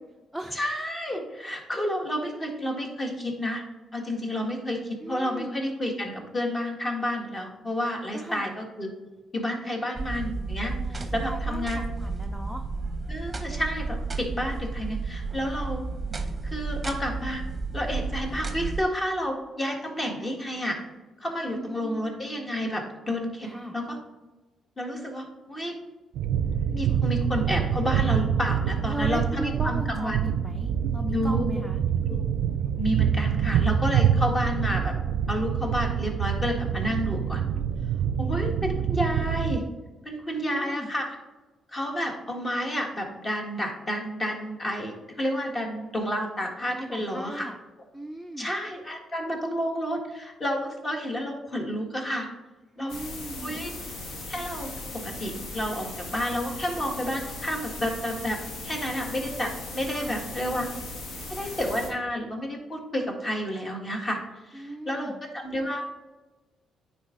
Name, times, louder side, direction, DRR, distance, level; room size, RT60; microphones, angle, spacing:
voice 1, 0.5-3.6 3.9-8.9 9.3-11.9 13.1-15.8 16.4-17.4 17.7-20.8 21.2-24.0 24.8-25.7 26.6-30.3 31.1-31.6 32.1-32.2 32.8-34.9 35.3-37.4 38.2-39.6 40.0-41.1 41.7-47.5 48.4-52.3 52.8-52.9 53.3-53.7 54.3-54.7 55.0-58.4 58.6-60.7 61.3-64.2 64.4-65.8, equal, 25° left, 2 dB, 1.6 m, -30 dB
voice 2, 5.0-5.6 8.1-8.5 10.7-12.6 21.5-22.2 23.4-23.7 28.9-31.8 40.4-40.9 46.7-47.6 47.9-48.5 52.8-53.6 59.9-60.2 64.5-65.2, right 1 dB, 5° left, 4 dB, 0.5 m, -37 dB
sound 1, 9.9-18.8, right 3 dB, 25° right, 0.8 m, -32 dB
sound 2, 26.2-39.6, right 8 dB, 85° right, 0.3 m, -26 dB
sound 3, 52.9-61.9, left 2 dB, 70° left, 1.5 m, -38 dB
9.5 x 4.0 x 3.8 m, 1.2 s
cardioid pair, 90°, 0 cm